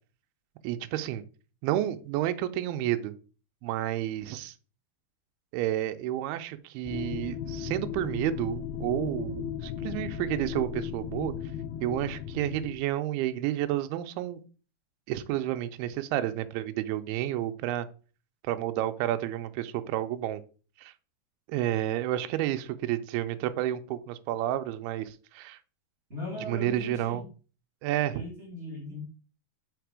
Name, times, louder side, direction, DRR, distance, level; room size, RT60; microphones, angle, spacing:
voice 1, 0.6-1.2 1.6-3.1 3.6-4.5 5.5-11.3 11.8-14.4 15.1-17.9 18.4-20.4 20.8-20.9 21.5-25.6 26.5-27.2 27.8-28.2, right 13 dB, 80° right, 9 dB, 2.5 m, -30 dB
sound 1, 6.9-12.7, left 9 dB, 80° left, 2.4 m, -36 dB
voice 2, 26.1-27.2 28.1-29.0, left 2 dB, 20° right, -4 dB, 2.4 m, -38 dB
5.8 x 4.3 x 4.7 m, 0.37 s
omnidirectional pair, 4.6 m